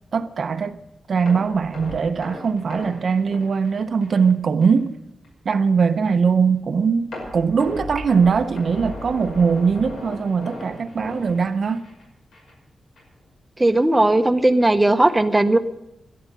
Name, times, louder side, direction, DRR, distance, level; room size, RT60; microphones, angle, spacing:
voice 1, 0.1-0.8 1.1-4.9 5.4-11.8, right 5 dB, 50° right, 0.6 m, -21 dB
sound 1, 1.3-4.3 4.6-4.8 5.2-5.3 7.1-12.0 12.3-12.5 13.0-13.1, left 1 dB, 90° left, 5.8 m, -36 dB
voice 2, 13.6-15.6, right 2 dB, 10° right, 0.7 m, -17 dB
12.0 x 11.0 x 9.2 m
wide cardioid pair, 175°, 0 cm